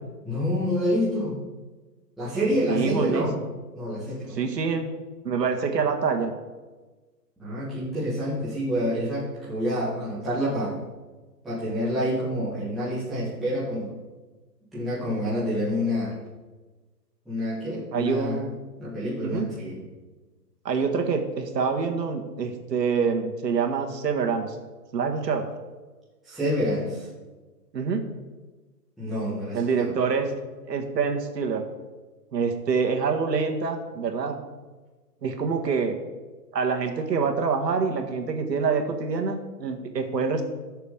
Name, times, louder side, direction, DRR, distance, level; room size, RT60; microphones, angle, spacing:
voice 1, 0.2-1.3 2.2-3.3 3.7-4.4 7.4-10.7 11.4-14.0 14.7-16.1 17.3-18.4 18.8-19.8 26.2-27.1 29.0-29.9, equal, ahead, -12 dB, 0.5 m, -27 dB
voice 2, 2.7-3.3 4.3-5.0 5.2-6.3 17.9-18.6 19.2-19.5 20.7-24.6 24.9-25.5 27.7-28.0 29.5-30.3 30.7-31.6 32.3-34.4 35.2-36.0 36.5-40.4, right 5 dB, 75° right, 4 dB, 1.8 m, -26 dB
16.5 x 6.7 x 3.6 m, 1.2 s
hypercardioid pair, 180°, 49 cm